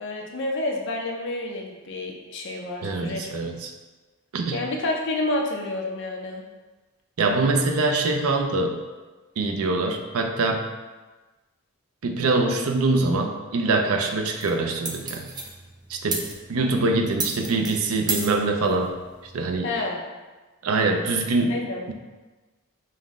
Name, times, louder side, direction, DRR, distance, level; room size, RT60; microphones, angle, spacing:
voice 1, 0.0-3.3 4.5-6.4 16.6-16.8 19.6-20.0 21.5-21.8, left 2 dB, 55° left, 1 dB, 0.6 m, -29 dB
voice 2, 2.8-3.7 4.3-4.6 7.2-8.8 9.4-10.6 12.0-15.3 15.9-18.9 19.3-19.7 20.6-21.6, right 3 dB, 85° right, 4 dB, 0.5 m, -24 dB
sound 1, 14.4-19.6, right 3 dB, 20° right, 0.4 m, -34 dB
5.5 x 2.1 x 3.6 m, 1.2 s
head